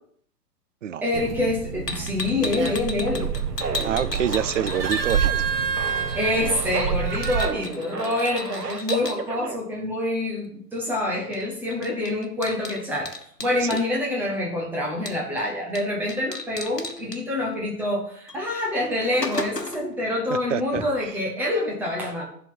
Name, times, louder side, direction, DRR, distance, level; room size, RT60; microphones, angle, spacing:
voice 1, 1.0-3.3 6.2-13.1 13.4-22.2, left 1 dB, 5° right, -3 dB, 0.6 m, -26 dB
sound 1, 1.1-7.5, right 7 dB, 40° right, 0.9 m, -28 dB
sound 2, 1.9-5.6 5.9-9.2 11.3-11.4 11.7-13.9 15.1-15.4 15.7-15.8 16.1-17.2 18.3-18.4 18.8-19.9, left 3 dB, 90° left, 1.2 m, -35 dB
sound 3, 3.1-9.6, right 4 dB, 85° right, 0.9 m, -33 dB
voice 2, 3.8-5.5 13.7-13.8 20.3-20.8, right 9 dB, 55° right, 15 dB, 0.5 m, -27 dB
10.5 x 3.8 x 5.7 m, 0.62 s
figure-of-eight pair, 120°, 47 cm